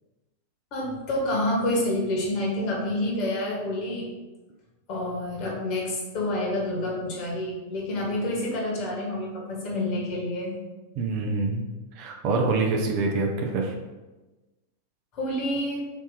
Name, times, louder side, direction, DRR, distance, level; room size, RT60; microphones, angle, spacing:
voice 1, 0.7-4.1 4.9-10.5 15.1-15.8, left 1 dB, 40° left, -2 dB, 1.4 m, -28 dB
voice 2, 11.0-11.6 11.9-13.7, right 3 dB, 45° right, 2 dB, 0.6 m, -25 dB
4.7 x 2.7 x 3.9 m, 1.1 s
figure-of-eight pair, 90°, 0 cm